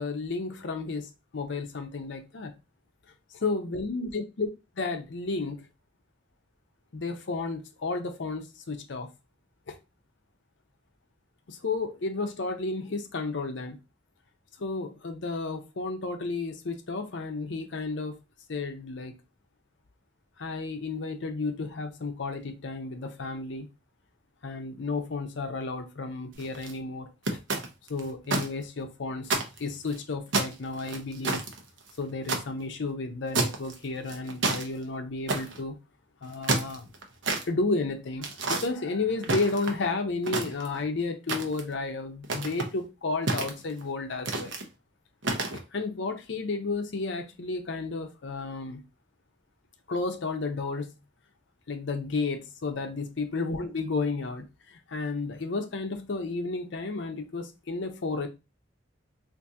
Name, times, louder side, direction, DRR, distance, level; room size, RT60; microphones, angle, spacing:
voice 1, 0.0-2.5 3.3-4.5 4.8-5.6 6.9-9.1 9.7-9.8 11.5-13.8 14.6-18.2 18.5-19.1 20.4-23.7 24.4-27.4 27.9-29.3 29.6-31.4 32.0-35.8 36.2-36.9 37.4-44.6 45.5-48.8 49.9-50.9 51.7-58.3, left 3 dB, 70° left, 0.6 m, -32 dB
sound 1, 26.3-26.7 27.2-28.5 28.8-28.9 29.2-30.0 30.3-32.4 33.3-33.7 34.1-34.7 35.3-35.6 36.2-37.4 38.2-38.7 39.2-39.9 40.2-40.8 41.3-41.7 42.2-42.7 43.3-43.8 44.2-44.6 45.2-45.6, right 3 dB, 75° right, 0.7 m, -29 dB
2.7 x 2.6 x 3.5 m
head